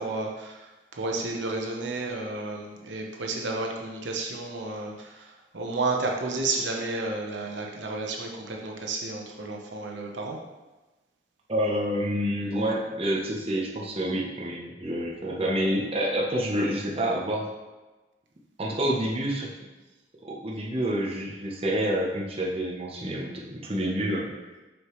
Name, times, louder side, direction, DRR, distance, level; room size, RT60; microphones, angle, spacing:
voice 1, 0.0-10.4, right 3 dB, 75° right, 0 dB, 0.9 m, -32 dB
voice 2, 11.5-17.5 18.6-19.5 20.2-24.3, equal, 30° right, -3 dB, 0.8 m, -28 dB
6.3 x 5.6 x 3.1 m, 1.1 s
head